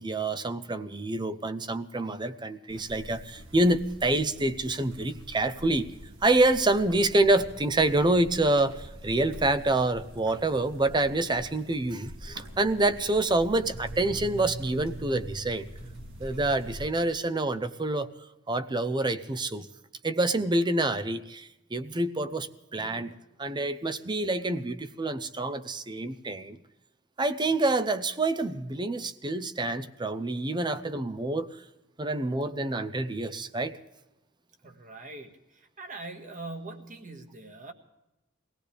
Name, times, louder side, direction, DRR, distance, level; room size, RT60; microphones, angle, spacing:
voice 1, 0.0-5.9 6.2-15.7 16.2-18.1 18.5-19.7 20.0-23.1 23.4-26.6 27.2-31.6 32.0-33.8, right 2 dB, 25° right, 11 dB, 0.6 m, -27 dB
sound 1, 2.7-16.9, right 1 dB, 75° right, 2.2 m, -44 dB
voice 2, 34.6-37.7, right 2 dB, 40° right, 4 dB, 1.8 m, -42 dB
22.5 x 17.0 x 3.4 m, 0.96 s
head